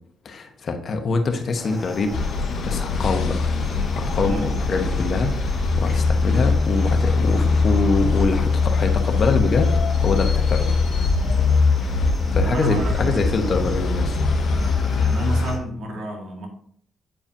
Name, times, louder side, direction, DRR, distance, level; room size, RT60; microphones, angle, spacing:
voice 1, 0.2-2.1 2.6-3.4 4.0-9.7 10.0-10.8 12.3-14.2, left 3 dB, 50° left, 5 dB, 1.1 m, -24 dB
sound 1, 1.5-15.6, left 2 dB, 5° left, 2.1 m, -38 dB
sound 2, 2.1-15.5, left 4 dB, 70° left, 1.0 m, -21 dB
voice 2, 12.4-13.4 15.0-16.5, equal, 65° right, 1 dB, 1.8 m, -31 dB
8.7 x 4.8 x 2.7 m, 0.64 s
cardioid pair, 90°, 0 cm